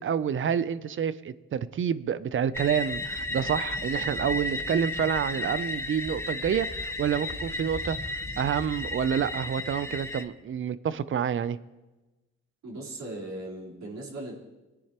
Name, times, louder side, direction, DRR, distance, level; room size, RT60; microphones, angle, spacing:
voice 1, 0.0-8.0 8.4-11.6, right 8 dB, 45° right, 16 dB, 0.5 m, -28 dB
sound 1, 2.5-10.2, left 2 dB, 10° left, 0.9 m, -33 dB
voice 2, 12.6-14.3, right 1 dB, 65° right, -5 dB, 4.0 m, -38 dB
20.0 x 10.0 x 3.0 m, 1.1 s
cardioid pair, 90°, 30 cm